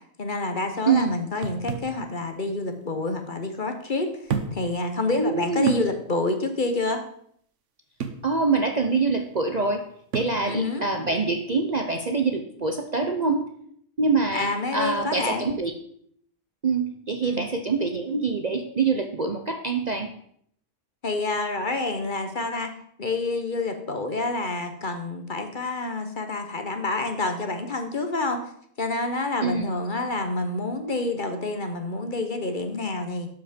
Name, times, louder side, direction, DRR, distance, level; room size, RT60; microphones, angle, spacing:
voice 1, 0.2-4.1 4.5-7.0 10.4-10.9 14.3-15.5 17.2-17.4 21.0-22.7 23.0-28.4 28.8-33.3, left 2 dB, 40° left, 6 dB, 1.1 m, -28 dB
voice 2, 0.9-1.2 5.2-5.8 8.2-9.9 10.1-13.5 14.0-15.7 16.6-20.1 29.4-29.7, right 4 dB, 40° right, 4 dB, 0.7 m, -25 dB
sound 1, 1.4-2.0 3.1-3.2 4.3-4.7 5.1-5.2 5.7-5.9 8.0-8.3 10.1-10.4, right 5 dB, 65° right, 1.2 m, -30 dB
12.0 x 5.8 x 5.1 m, 0.66 s
omnidirectional pair, 1.4 m